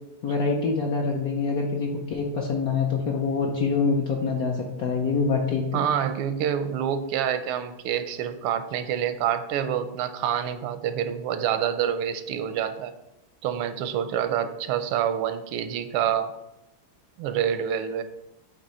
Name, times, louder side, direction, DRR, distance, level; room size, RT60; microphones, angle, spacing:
voice 1, 0.2-5.8, left 4 dB, 65° left, 0 dB, 0.9 m, -25 dB
voice 2, 5.7-12.9 13.4-16.3 17.2-18.0, right 9 dB, 85° right, 10 dB, 1.5 m, -27 dB
8.4 x 3.1 x 4.2 m, 0.88 s
omnidirectional pair, 2.3 m